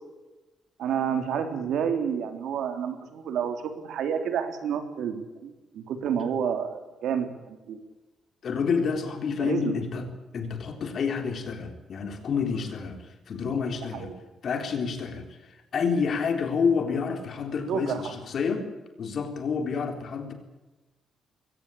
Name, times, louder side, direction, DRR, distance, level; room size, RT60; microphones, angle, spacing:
voice 1, 0.8-7.8 9.4-9.8 13.9-14.1 17.7-18.1, right 7 dB, 75° right, 8 dB, 3.5 m, -29 dB
voice 2, 8.4-10.1 10.3-14.1 14.4-18.7 19.0-20.3, left 5 dB, 45° left, 6 dB, 3.9 m, -29 dB
22.5 x 18.0 x 8.6 m, 1.1 s
cardioid pair, 180°, 0 cm